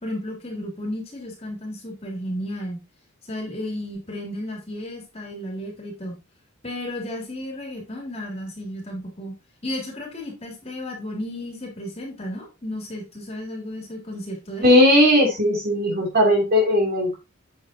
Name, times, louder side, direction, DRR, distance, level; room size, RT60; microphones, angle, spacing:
voice 1, 0.0-2.8 3.3-6.2 6.6-9.3 9.6-14.7, left 1 dB, 30° left, 0 dB, 3.0 m, -33 dB
voice 2, 14.6-17.2, left 1 dB, 50° right, 0 dB, 3.4 m, -17 dB
8.0 x 7.7 x 2.9 m, 0.26 s
head